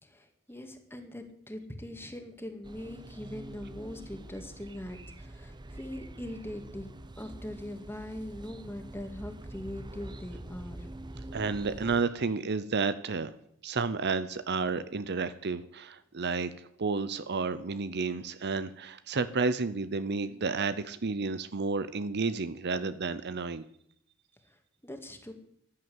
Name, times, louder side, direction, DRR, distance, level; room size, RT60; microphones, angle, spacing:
voice 1, 0.0-10.9 24.8-25.3, left 1 dB, 10° left, 6 dB, 2.1 m, -42 dB
sound 1, 2.6-12.0, right 1 dB, 20° right, 0.7 m, -45 dB
voice 2, 11.3-13.3 13.6-23.6, right 4 dB, 55° right, 13 dB, 0.8 m, -31 dB
14.5 x 11.0 x 7.9 m, 0.72 s
head